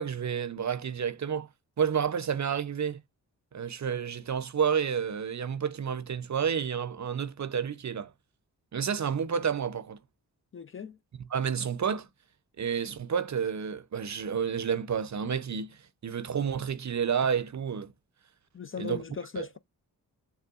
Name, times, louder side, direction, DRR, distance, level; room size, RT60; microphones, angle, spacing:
voice 1, 0.0-1.5 1.8-3.0 3.5-8.1 8.7-10.0 11.3-12.1 12.6-17.9 18.8-19.0 19.4-19.5, right 7 dB, 45° right, 0.7 m, -30 dB
voice 2, 10.5-11.0 18.5-19.6, left 6 dB, 30° left, 0.5 m, -38 dB
6.7 x 2.2 x 2.4 m
supercardioid pair, 40°, 41 cm